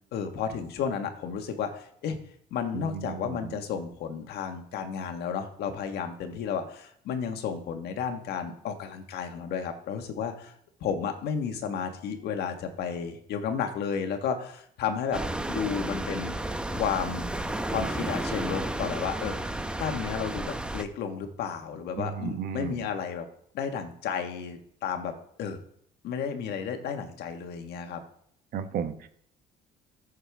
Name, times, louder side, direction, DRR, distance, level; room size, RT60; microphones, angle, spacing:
voice 1, 0.1-2.2 2.5-10.5 10.8-16.4 16.7-17.3 17.7-23.3 23.5-25.6 26.0-28.0, left 7 dB, 75° left, 6 dB, 1.5 m, -32 dB
voice 2, 2.7-3.6 22.0-22.8 28.5-29.1, right 7 dB, 60° right, 8 dB, 1.1 m, -34 dB
sound 1, 15.1-20.8, right 1 dB, 5° right, 0.8 m, -32 dB
15.0 x 6.5 x 3.5 m, 0.67 s
cardioid pair, 110°, 17 cm